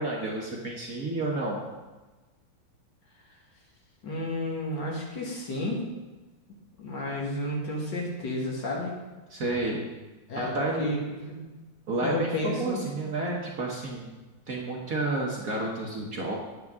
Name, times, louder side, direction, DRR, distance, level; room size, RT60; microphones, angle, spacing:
voice 1, 0.0-1.6 9.3-9.9 10.4-10.9 11.9-14.1 14.5-16.4, right 2 dB, 50° right, -2 dB, 1.3 m, -30 dB
voice 2, 4.0-5.8 6.8-9.0 10.3-11.5 12.0-12.8, left 1 dB, 60° left, -2 dB, 2.1 m, -31 dB
9.0 x 8.1 x 3.6 m, 1.2 s
omnidirectional pair, 2.3 m